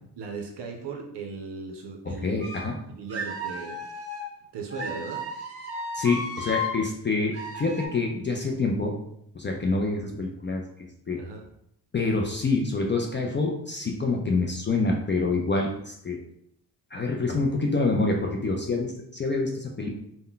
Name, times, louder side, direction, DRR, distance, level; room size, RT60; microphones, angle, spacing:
voice 1, 0.2-2.5 2.9-3.8 4.5-5.2 11.2-11.4, right 4 dB, 75° right, 3 dB, 0.5 m, -37 dB
voice 2, 2.1-2.8 5.9-8.9 9.3-10.7 11.1-11.2 11.9-16.2 16.9-19.9, left 3 dB, 30° left, 1 dB, 0.4 m, -26 dB
sound 1, 2.4-2.7 3.1-4.3 4.7-6.8 7.3-7.9, left 1 dB, 35° right, 0.8 m, -34 dB
2.1 x 2.1 x 3.8 m, 0.73 s
cardioid pair, 65°, 42 cm